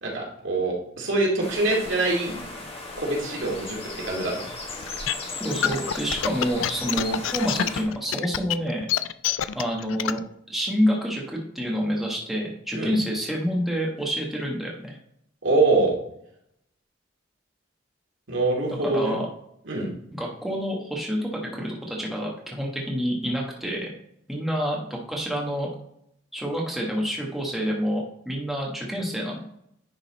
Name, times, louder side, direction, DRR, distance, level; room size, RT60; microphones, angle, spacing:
voice 1, 0.0-2.3 3.0-4.4 12.7-12.9 15.4-16.0 18.3-19.2 19.7-19.9, right 2 dB, 70° right, -2 dB, 2.2 m, -24 dB
sound 1, 1.4-7.8, left 2 dB, 30° left, 1.3 m, -37 dB
sound 2, 4.8-10.2, left 10 dB, 80° left, 0.4 m, -26 dB
voice 2, 5.4-8.9 9.5-10.2 10.5-15.0 18.8-19.2 20.1-23.9 24.3-25.7 26.3-29.4, equal, ahead, -3 dB, 1.3 m, -28 dB
10.0 x 3.9 x 4.0 m, 0.72 s
head